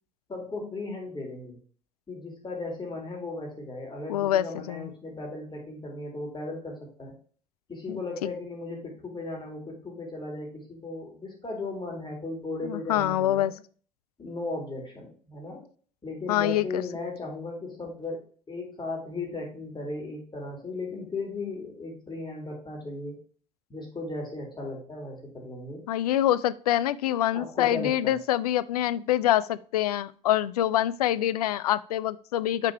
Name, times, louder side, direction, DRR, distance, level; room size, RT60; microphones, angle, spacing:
voice 1, 0.3-1.6 2.1-7.1 7.7-13.5 14.2-15.6 16.0-23.2 23.7-25.8 27.3-28.2, left 2 dB, 20° left, 0 dB, 3.5 m, -36 dB
voice 2, 4.1-4.9 7.9-8.3 12.6-13.5 16.3-16.6 25.9-32.7, left 12 dB, 75° left, 15 dB, 0.4 m, -25 dB
6.7 x 4.4 x 4.6 m, 0.43 s
figure-of-eight pair, 65°, 20 cm